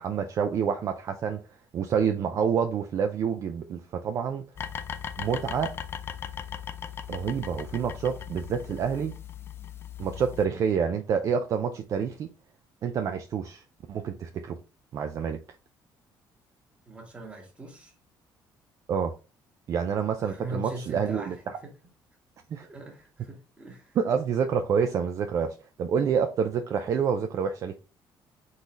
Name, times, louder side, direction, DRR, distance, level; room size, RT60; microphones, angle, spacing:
voice 1, 0.0-1.4 1.7-4.4 5.2-5.8 7.1-9.2 10.0-12.3 12.8-14.6 14.9-15.4 18.9-19.2 19.7-21.4 22.5-22.7 24.0-27.8, right 7 dB, 40° right, 0.4 m, -28 dB
sound 1, 4.6-10.5, left 8 dB, 30° left, 0.4 m, -38 dB
voice 2, 16.8-17.9 20.2-21.3 21.6-21.7 22.6-24.0, right 2 dB, 15° right, 1.2 m, -41 dB
3.9 x 3.9 x 3.0 m
cardioid pair, 170°, 8 cm